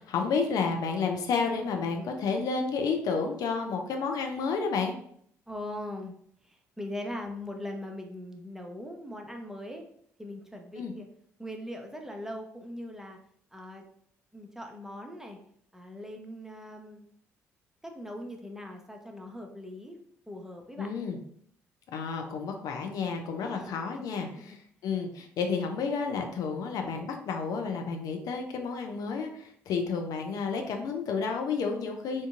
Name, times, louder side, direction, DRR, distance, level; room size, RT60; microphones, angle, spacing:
voice 1, 0.0-5.0 10.8-10.9 20.8-21.2 21.9-24.6 24.8-32.3, left 5 dB, 55° left, 4 dB, 0.4 m, -31 dB
voice 2, 5.5-6.1 6.4-9.8 10.2-11.1 11.4-13.2 13.5-13.9 14.3-15.4 15.7-17.1 17.8-20.0 20.3-20.9 23.4-24.6, left 1 dB, 5° right, 2 dB, 0.6 m, -41 dB
3.7 x 2.5 x 2.4 m, 0.65 s
figure-of-eight pair, 45°, 8 cm